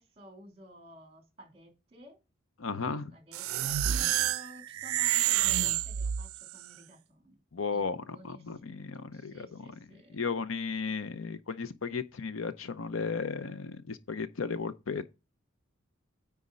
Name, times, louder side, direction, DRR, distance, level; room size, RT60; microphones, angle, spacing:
voice 1, 0.0-2.2 2.8-7.4 7.7-10.3, right 1 dB, 30° right, 2.8 m, -53 dB
voice 2, 2.6-3.1 7.5-9.6 10.1-15.1, left 5 dB, 70° left, 0.7 m, -35 dB
sound 1, 3.3-6.6, right 12 dB, 90° right, 0.4 m, -29 dB
9.7 x 3.6 x 5.1 m
head